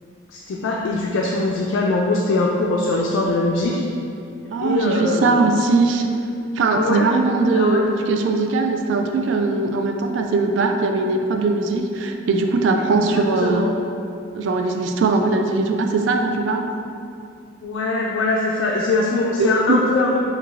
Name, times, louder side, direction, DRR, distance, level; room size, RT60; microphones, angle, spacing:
voice 1, 0.3-3.8 4.6-5.4 6.7-7.1 7.5-7.8 12.9-13.7 17.6-20.2, left 2 dB, 80° left, -2 dB, 0.3 m, -22 dB
voice 2, 4.5-6.1 6.6-13.6 14.3-16.7 19.4-19.5, right 3 dB, 70° right, 4 dB, 0.3 m, -20 dB
4.8 x 2.3 x 2.4 m, 2.4 s
head